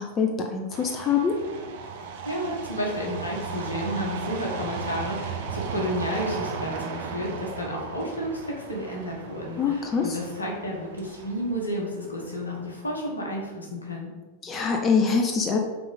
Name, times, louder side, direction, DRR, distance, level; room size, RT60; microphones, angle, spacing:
voice 1, 0.0-1.3 9.6-10.1 14.4-15.6, left 5 dB, 25° left, 3 dB, 0.7 m, -24 dB
sound 1, 0.7-13.1, right 5 dB, 55° right, 0.7 m, -36 dB
voice 2, 2.2-14.1, equal, 75° left, -2 dB, 1.5 m, -31 dB
5.9 x 3.7 x 5.1 m, 1.3 s
figure-of-eight pair, 90°, 0 cm